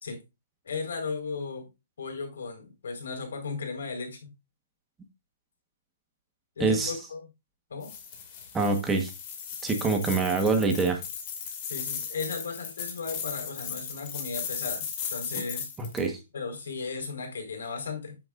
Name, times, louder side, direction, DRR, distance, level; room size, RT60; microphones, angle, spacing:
voice 1, 0.6-1.7 2.0-4.3 6.6-7.2 7.7-7.9 11.6-15.7 16.3-18.2, left 4 dB, 70° left, 4 dB, 4.5 m, -36 dB
voice 2, 6.6-6.9 8.5-9.1 9.6-11.0 15.8-16.2, right 4 dB, 10° right, 4 dB, 1.3 m, -25 dB
sound 1, 7.8-16.1, left 7 dB, 30° left, 2.3 m, -37 dB
9.3 x 9.0 x 2.5 m, 0.25 s
hypercardioid pair, 165°, 0 cm